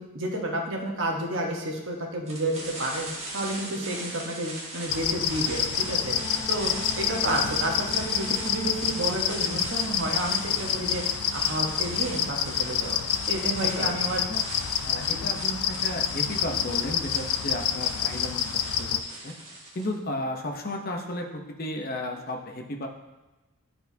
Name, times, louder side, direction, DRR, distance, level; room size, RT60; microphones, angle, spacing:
voice 1, 0.0-6.1 6.5-13.0 13.3-14.2 15.1-15.4, right 1 dB, 60° right, 0 dB, 1.1 m, -31 dB
sound 1, 2.3-19.9, right 2 dB, 30° right, 1.3 m, -40 dB
sound 2, 4.9-19.0, left 9 dB, 90° left, 0.4 m, -28 dB
sound 3, 5.7-10.1, right 1 dB, 10° left, 1.7 m, -42 dB
voice 2, 10.5-10.8 13.8-14.0 14.3-14.4 14.8-19.0 19.2-19.3 19.7-22.9, left 1 dB, 45° left, 3 dB, 0.7 m, -34 dB
10.0 x 4.4 x 2.7 m, 1.1 s
head